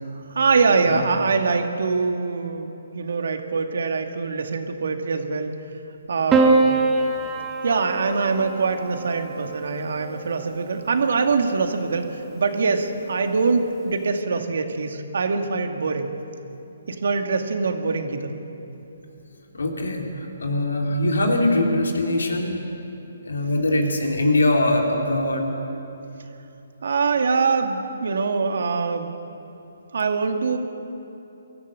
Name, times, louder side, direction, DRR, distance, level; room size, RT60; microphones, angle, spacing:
voice 1, 0.3-5.6 6.1-6.7 7.6-16.1 16.9-18.4 26.8-29.1 29.9-30.6, right 4 dB, 70° right, 5 dB, 2.1 m, -23 dB
Piano, 6.3-10.8 12.0-12.7, right 3 dB, 15° right, 1.5 m, -24 dB
voice 2, 19.5-22.6 23.2-25.5, left 1 dB, 85° left, 1 dB, 3.4 m, -22 dB
23.0 x 14.0 x 8.5 m, 2.9 s
hypercardioid pair, 150°, 0 cm